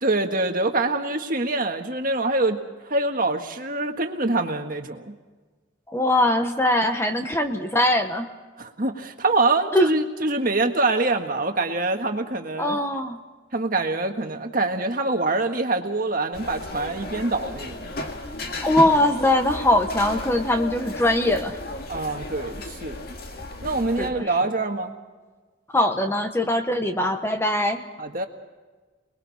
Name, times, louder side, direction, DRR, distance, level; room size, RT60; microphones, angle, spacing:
voice 1, 0.0-2.6 2.9-5.1 8.6-12.8 13.5-17.9 21.9-23.0 23.6-24.9 28.0-28.3, right 2 dB, 45° right, 4 dB, 1.6 m, -25 dB
voice 2, 5.9-8.3 9.7-10.0 12.6-13.2 18.6-21.5 24.0-24.3 25.7-27.8, left 1 dB, 10° left, 6 dB, 1.0 m, -21 dB
sound 1, 16.3-24.1, left 1 dB, 50° left, 2.0 m, -34 dB
29.0 x 21.0 x 4.2 m, 1.3 s
head